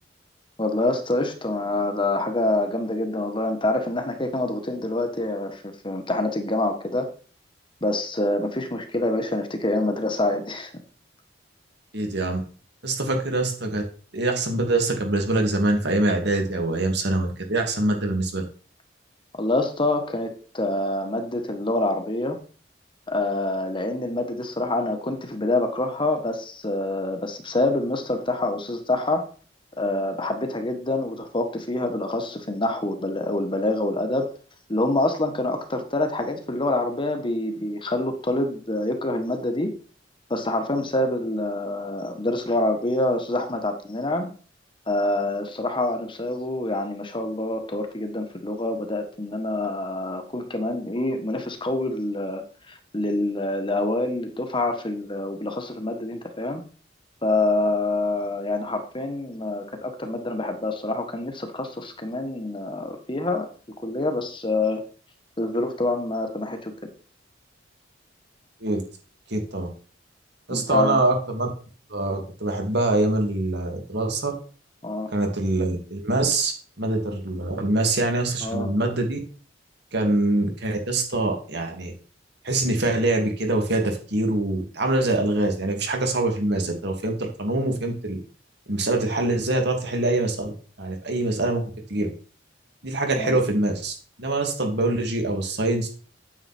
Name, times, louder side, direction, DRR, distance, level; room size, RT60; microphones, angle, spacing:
voice 1, 0.6-7.1 7.8-10.7 19.4-22.4 23.1-29.2 29.8-34.3 34.7-39.7 40.3-44.3 44.9-56.6 57.2-63.5 63.8-64.8 65.4-66.7 70.5-71.0 74.8-75.1 78.4-78.7 93.1-93.4, left 2 dB, 25° left, 6 dB, 1.5 m, -26 dB
voice 2, 11.9-12.4 12.8-13.8 14.1-18.4 68.6-68.8 69.3-69.7 70.5-71.5 71.9-74.3 75.1-79.2 79.9-81.9 82.4-88.2 88.7-90.5 90.8-91.6 91.9-92.1 92.8-95.9, right 2 dB, 60° right, 3 dB, 2.7 m, -24 dB
9.3 x 9.1 x 4.5 m, 0.40 s
head